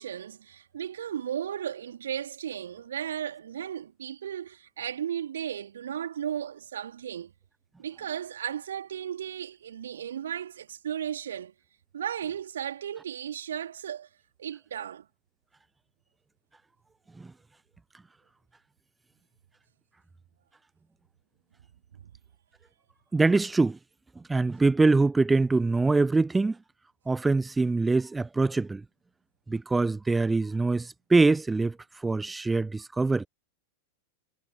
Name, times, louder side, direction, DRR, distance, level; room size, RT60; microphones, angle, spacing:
voice 1, 0.0-7.3 7.8-11.5 11.9-14.1 14.4-15.1 22.0-22.1, right 9 dB, 65° right, 2.8 m, -35 dB
voice 2, 23.1-23.8 24.2-26.6 27.1-28.8 29.5-31.8 32.0-33.3, right 3 dB, 10° right, 0.5 m, -24 dB
figure-of-eight pair, 90°, 0 cm